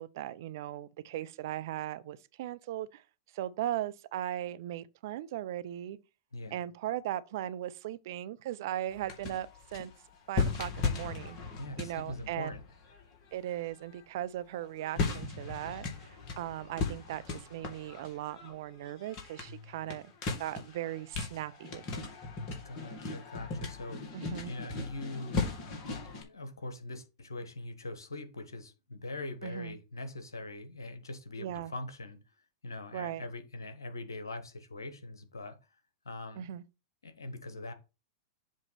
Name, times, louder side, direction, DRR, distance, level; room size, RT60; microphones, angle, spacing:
voice 1, 0.0-3.0 3.3-6.0 6.5-9.9 10.3-11.4 11.8-12.5 13.3-20.1 20.4-22.1 24.1-24.5 29.4-29.7 31.4-31.7 32.9-33.2 36.4-36.6, right 12 dB, 60° right, 0.5 m, -38 dB
voice 2, 6.3-6.6 11.5-12.6 22.6-24.0 24.5-25.4 25.8-32.2 32.6-35.6 36.0-36.5 37.0-37.7, left 2 dB, 85° left, 1.2 m, -42 dB
sound 1, 8.9-14.0 14.5-26.2, left 4 dB, 40° left, 2.2 m, -37 dB
7.4 x 3.1 x 5.8 m
figure-of-eight pair, 100°, 2 cm